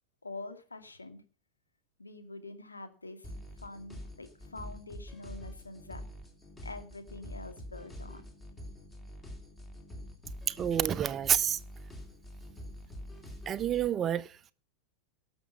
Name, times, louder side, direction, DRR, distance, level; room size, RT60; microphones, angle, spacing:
voice 1, 0.2-1.3 2.0-3.3 3.6-6.0 6.6-8.3, left 2 dB, 80° left, 2.3 m, -45 dB
sound 1, 3.2-13.9, left 1 dB, 15° left, 3.2 m, -46 dB
voice 2, 10.5-11.6 13.5-14.3, right 9 dB, 25° right, 0.7 m, -28 dB
18.5 x 7.0 x 5.6 m
figure-of-eight pair, 90°, 0 cm